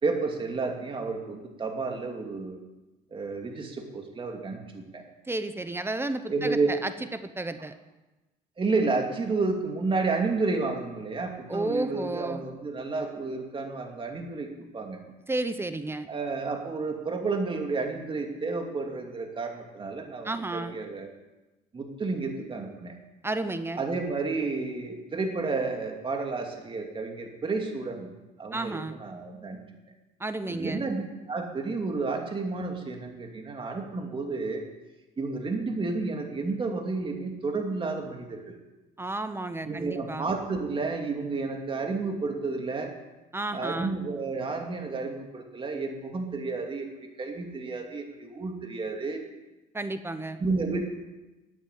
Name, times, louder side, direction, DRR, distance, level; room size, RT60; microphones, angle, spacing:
voice 1, 0.0-2.6 3.1-5.0 6.3-6.7 8.6-15.0 16.1-21.1 21.7-22.9 23.8-28.1 28.4-29.6 30.5-31.0 31.3-34.6 35.2-38.6 39.7-42.9 43.5-46.9 47.2-49.2 50.4-50.8, right 3 dB, 30° right, 2 dB, 2.6 m, -31 dB
voice 2, 5.3-7.7 11.5-12.4 15.3-16.1 20.2-20.8 23.2-23.8 28.5-29.0 30.2-30.8 39.0-40.3 43.3-43.9 49.7-50.4, right 2 dB, 15° right, 10 dB, 0.9 m, -32 dB
13.0 x 8.9 x 8.3 m, 1.1 s
cardioid pair, 110°, 17 cm